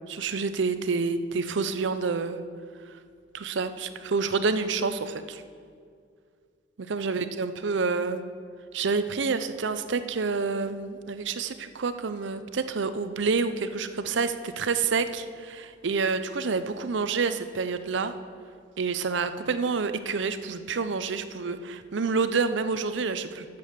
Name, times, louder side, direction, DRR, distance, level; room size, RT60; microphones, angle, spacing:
voice 1, 0.1-2.4 3.3-5.4 6.9-8.2 8.7-18.1 18.8-23.5, right 4 dB, 70° right, 11 dB, 0.6 m, -28 dB
8.5 x 7.6 x 6.5 m, 2.1 s
head